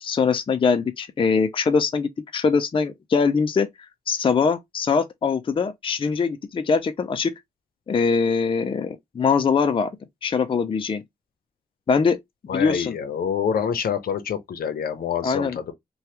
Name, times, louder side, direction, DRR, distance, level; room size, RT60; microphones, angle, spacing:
voice 1, 0.0-3.7 4.1-7.3 7.9-9.9 10.2-11.0 11.9-12.2 12.5-13.0 15.2-15.6, left 5 dB, 35° left, 0.4 m, -22 dB
voice 2, 12.5-15.7, left 7 dB, 75° left, 0.7 m, -26 dB
2.8 x 2.3 x 3.1 m
cardioid pair, 75°, 15 cm